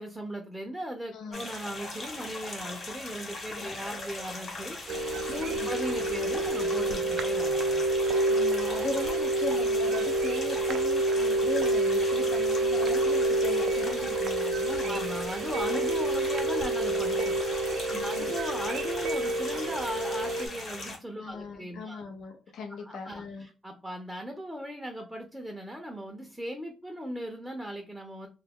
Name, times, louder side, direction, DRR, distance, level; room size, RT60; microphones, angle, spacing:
voice 1, 0.0-7.8 14.9-17.4 17.9-22.0 22.8-28.3, equal, 5° right, 3 dB, 0.6 m, -38 dB
voice 2, 1.1-1.4 3.5-3.8 5.5-5.7 8.3-15.0 17.9-18.3 21.2-23.5, left 3 dB, 70° left, 3 dB, 0.6 m, -38 dB
sound 1, 1.3-21.0, left 2 dB, 45° left, 1.3 m, -40 dB
sound 2, 4.9-20.5, right 2 dB, 70° right, 0.4 m, -28 dB
2.3 x 2.1 x 3.5 m, 0.35 s
cardioid pair, 90°, 0 cm